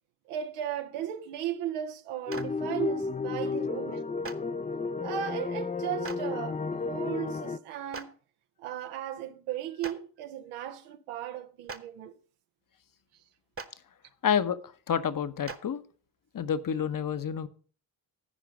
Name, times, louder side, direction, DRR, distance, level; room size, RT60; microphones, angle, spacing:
voice 1, 0.3-4.1 5.0-8.1 8.6-12.1, right 10 dB, 80° right, 0.8 m, -36 dB
sound 1, 2.3-7.6, left 4 dB, 15° left, 0.5 m, -32 dB
Clapping, 2.3-2.4 4.2-4.3 6.0-6.2 7.9-8.0 9.8-9.9 11.6-11.8 13.5-13.6 15.4-15.6, right 4 dB, 25° right, 1.1 m, -37 dB
voice 2, 14.2-15.8 16.3-17.5, left 8 dB, 40° left, 1.0 m, -29 dB
13.5 x 5.0 x 5.1 m
hypercardioid pair, 45°, 49 cm